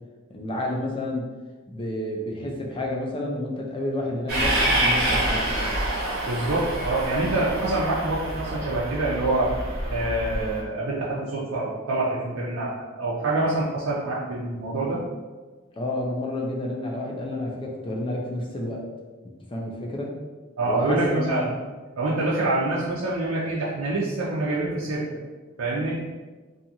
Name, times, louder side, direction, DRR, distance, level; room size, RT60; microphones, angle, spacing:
voice 1, 0.3-1.3 1.7-5.5 15.8-18.9 19.5-20.2 20.6-21.5, left 1 dB, 25° left, -1 dB, 0.4 m, -30 dB
Train, 4.3-10.6, right 1 dB, 45° right, 0.8 m, -27 dB
voice 2, 6.3-9.5 9.9-15.0 20.6-21.5 22.0-25.1 25.6-26.0, right 2 dB, 75° right, -7 dB, 0.5 m, -26 dB
2.7 x 2.4 x 2.8 m, 1.3 s
head